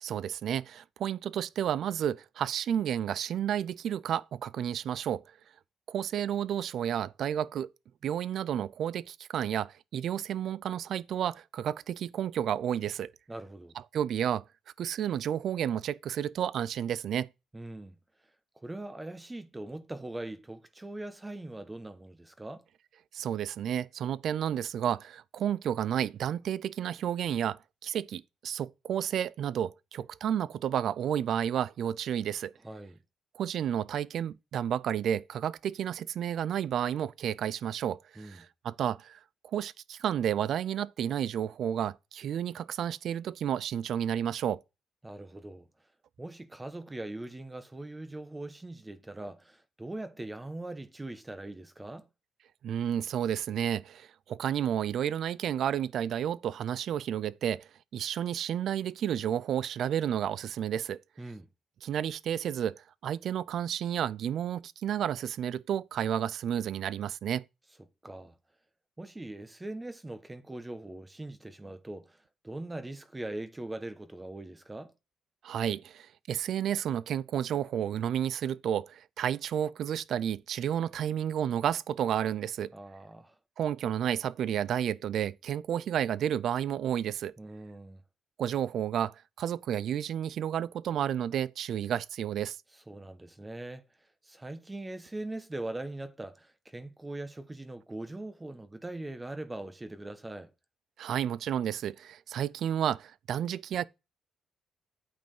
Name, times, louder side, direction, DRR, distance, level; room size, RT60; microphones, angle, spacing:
voice 1, 0.0-5.2 5.9-7.7 8.0-13.1 13.9-14.4 14.8-17.3 23.1-32.5 33.3-39.2 39.5-44.6 52.6-57.6 57.9-61.0 61.8-67.4 75.4-82.7 83.6-87.3 88.4-92.6 101.0-103.8, right 9 dB, 70° right, 0.4 m, -31 dB
voice 2, 13.3-13.7 17.5-18.0 18.6-22.6 32.6-33.0 38.2-38.4 45.0-45.7 46.2-52.1 61.2-61.5 68.0-68.3 69.0-74.9 82.7-83.3 87.4-88.0 92.9-93.9 94.2-100.5, right 2 dB, 15° right, 1.1 m, -41 dB
8.8 x 5.3 x 5.4 m
cardioid pair, 90°, 0 cm